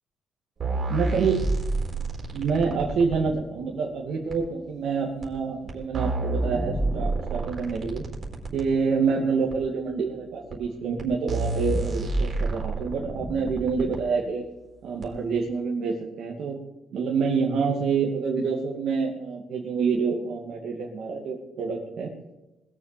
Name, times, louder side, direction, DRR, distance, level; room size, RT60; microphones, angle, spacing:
sound 1, 0.6-3.3 4.3-4.4 5.2-5.3 5.7-8.7 9.5-9.6 10.5-10.6 11.0-11.1 11.3-14.0 15.0-15.1, right 2 dB, 50° right, 4.3 m, -29 dB
voice 1, 0.9-1.5 2.3-8.0 8.5-14.4 14.8-16.6 16.9-22.1, right 5 dB, 70° right, -2 dB, 2.5 m, -27 dB
20.5 x 7.4 x 7.0 m, 0.99 s
cardioid pair, 90°, 0 cm